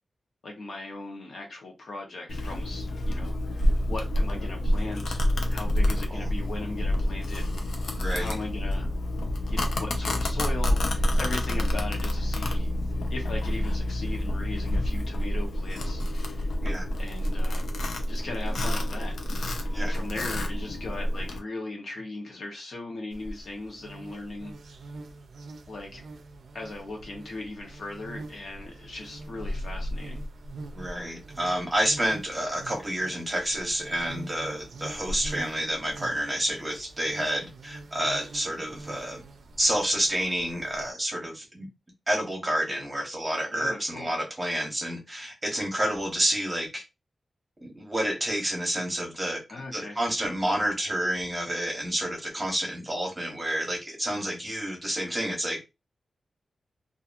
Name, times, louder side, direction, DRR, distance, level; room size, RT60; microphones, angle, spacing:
voice 1, 0.4-5.2 5.5-7.5 8.1-8.9 9.5-12.7 13.1-16.5 17.0-17.7 18.1-24.5 25.7-26.0 26.5-30.2 43.5-44.1 49.5-50.0, left 2 dB, 60° left, 0.9 m, -38 dB
Domestic sounds home sounds, 2.3-21.4, left 1 dB, 85° left, 0.6 m, -28 dB
voice 2, 8.0-8.3 16.6-16.9 19.7-19.9 30.7-39.2 39.6-41.7 42.1-46.8 47.6-49.4 49.7-55.6, right 1 dB, 15° right, 1.0 m, -29 dB
sound 1, 23.1-40.9, right 1 dB, 75° right, 0.4 m, -42 dB
2.9 x 2.4 x 2.5 m
wide cardioid pair, 175°, 0 cm